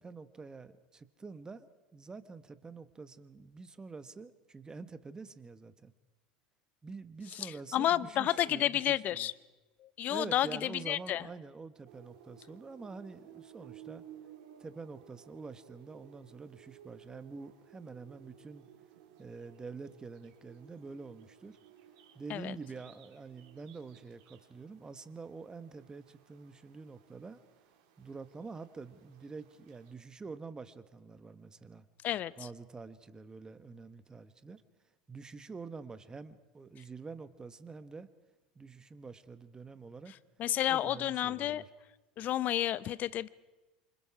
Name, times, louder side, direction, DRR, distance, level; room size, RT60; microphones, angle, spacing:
voice 1, 0.0-1.7 1.9-5.9 6.8-9.3 10.1-14.0 14.6-18.6 19.2-21.6 22.1-27.4 28.0-31.9 32.4-34.6 35.1-38.1 38.5-40.1 40.7-41.6, right 4 dB, 20° right, 12 dB, 1.4 m, -47 dB
voice 2, 7.3-9.3 9.8-11.3 22.3-22.5 32.0-32.5 40.4-41.6 42.2-43.3, left 12 dB, 45° left, 18 dB, 0.8 m, -31 dB
sound 1, 11.8-29.9, right 9 dB, 60° right, 3.8 m, -58 dB
27.5 x 25.5 x 4.9 m, 1.1 s
hypercardioid pair, 80°, 4 cm